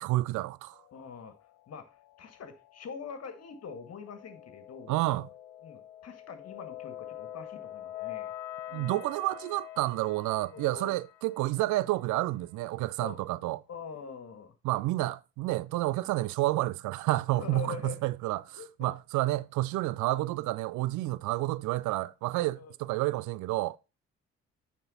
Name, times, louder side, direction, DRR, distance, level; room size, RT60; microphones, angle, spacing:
voice 1, 0.0-0.8 4.9-5.3 8.7-13.6 14.6-23.8, right 17 dB, 65° right, 0.5 m, -30 dB
sound 1, 0.7-12.0, left 13 dB, 75° left, 0.9 m, -46 dB
voice 2, 0.9-1.4 1.7-5.0 5.6-8.3 8.7-9.0 10.5-10.9 13.0-13.2 13.7-14.5 17.3-18.0 18.6-18.9 21.0-21.1 22.6-22.7, left 5 dB, 50° left, 1.9 m, -44 dB
9.6 x 4.4 x 4.0 m
hypercardioid pair, 50°, 32 cm